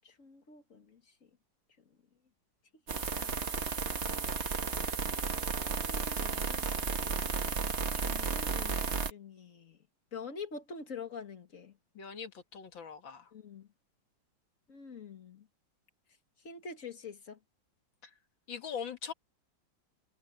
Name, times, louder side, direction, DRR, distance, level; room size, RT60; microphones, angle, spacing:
voice 1, 0.0-1.0 2.9-3.5 4.0-4.1 5.6-7.2 7.9-9.8 10.1-11.7 13.3-13.7 14.7-15.5 16.4-17.4, left 5 dB, 45° left, 2.2 m, -46 dB
sound 1, 2.9-9.1, right 5 dB, 40° right, 1.5 m, -33 dB
voice 2, 12.0-13.2 18.5-19.1, left 7 dB, 80° left, 2.7 m, -41 dB
omnidirectional pair, 2.0 m